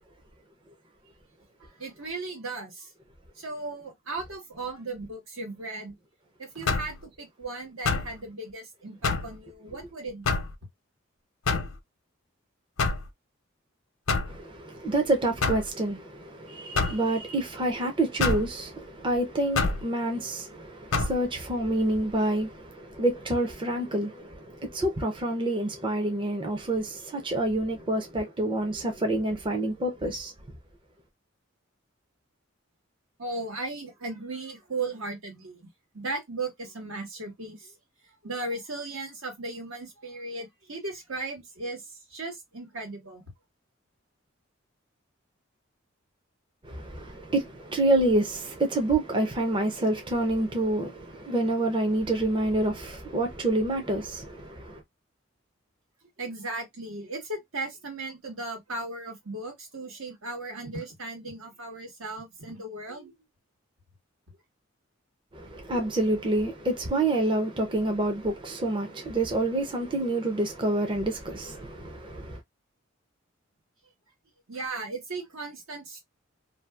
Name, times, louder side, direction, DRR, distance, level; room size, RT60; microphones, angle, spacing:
voice 1, 1.8-2.9 3.4-5.9 6.4-10.4 33.2-35.7 35.9-37.7 38.2-43.2 56.2-63.1 74.5-76.0, right 2 dB, 85° right, 1.3 m, -36 dB
sound 1, 6.7-7.0 7.9-8.1 9.0-9.3 10.3-10.5 11.5-11.8 12.8-13.1 14.1-14.4 15.4-15.7 16.8-17.0 18.2-18.5 19.6-19.8 20.9-21.2, left 4 dB, 80° left, 0.6 m, -26 dB
voice 2, 14.3-30.3 46.6-54.8 65.3-72.4, right 1 dB, 25° right, 0.5 m, -28 dB
2.6 x 2.3 x 2.3 m
head